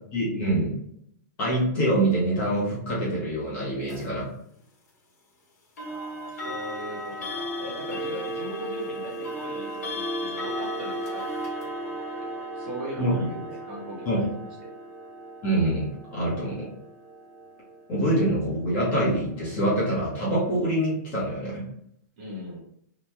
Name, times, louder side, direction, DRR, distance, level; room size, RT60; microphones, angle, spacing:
voice 1, 0.1-0.7 1.4-4.3 13.0-13.3 14.1-14.2 15.4-16.7 17.9-21.6, right 1 dB, 15° left, -7 dB, 0.9 m, -25 dB
sound 1, 3.9-4.1 5.8-18.6, equal, 55° left, 1.1 m, -35 dB
voice 2, 5.8-14.5 22.2-22.6, equal, 30° right, -4 dB, 0.9 m, -39 dB
2.9 x 2.1 x 3.4 m, 0.72 s
hypercardioid pair, 180°, 10 cm